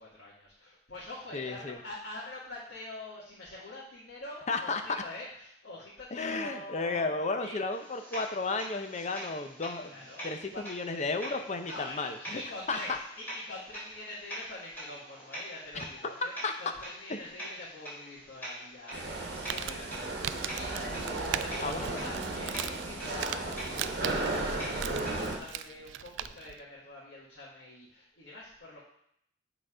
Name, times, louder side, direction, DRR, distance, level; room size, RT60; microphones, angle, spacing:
voice 1, 0.0-7.5 9.9-10.6 11.7-28.8, left 2 dB, 75° left, -8 dB, 1.9 m, -45 dB
voice 2, 1.3-1.8 4.5-5.0 6.1-12.4 12.7-13.0 15.7-15.9 16.4-16.5 17.1-17.2 21.6-22.0, left 3 dB, 40° left, 7 dB, 0.7 m, -33 dB
sound 1, 7.7-25.6, equal, 10° left, 3.1 m, -45 dB
sound 2, 18.9-25.4, right 2 dB, 60° right, 1.2 m, -35 dB
Crumpling crinkling, 19.2-26.6, right 10 dB, 85° right, 0.3 m, -40 dB
7.9 x 4.1 x 4.9 m, 0.71 s
head